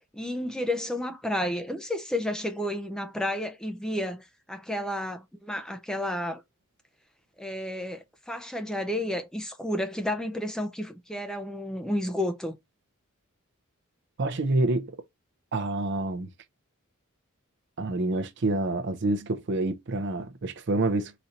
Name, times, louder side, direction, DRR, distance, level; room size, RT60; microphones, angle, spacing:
voice 1, 0.1-6.4 7.4-12.6, left 1 dB, 5° left, 0.5 m, -31 dB
voice 2, 14.2-15.0 15.5-16.3 17.8-21.1, right 2 dB, 55° right, 0.6 m, -27 dB
4.1 x 2.6 x 4.2 m
head